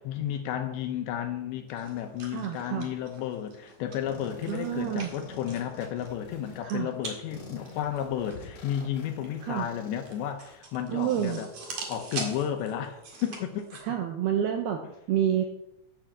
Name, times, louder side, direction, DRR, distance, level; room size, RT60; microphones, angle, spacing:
voice 1, 0.0-11.5 11.8-13.7, left 10 dB, 75° left, 6 dB, 3.1 m, -32 dB
sound 1, 1.7-13.8, right 3 dB, 50° right, 2.0 m, -44 dB
voice 2, 2.3-2.9 4.5-5.1 6.6-6.9 9.4-9.7 10.9-11.4 13.8-14.8 15.1-15.4, right 10 dB, 80° right, 4 dB, 2.3 m, -28 dB
sound 2, 4.1-6.6 7.3-12.1, left 3 dB, 50° left, 2.1 m, -48 dB
11.5 x 6.3 x 7.3 m, 0.87 s
omnidirectional pair, 5.5 m